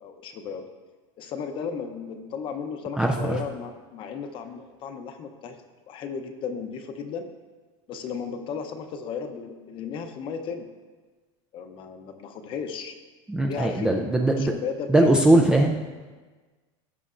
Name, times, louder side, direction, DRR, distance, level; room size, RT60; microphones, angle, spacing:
voice 1, 0.0-0.6 1.2-5.6 5.9-7.3 7.9-10.7 11.5-13.0 13.4-15.1, left 6 dB, 30° left, 7 dB, 0.7 m, -35 dB
voice 2, 3.0-3.3 13.3-14.5 14.9-15.8, right 1 dB, 5° right, 1 dB, 0.3 m, -20 dB
16.5 x 6.8 x 2.5 m, 1.3 s
supercardioid pair, 165°, 16 cm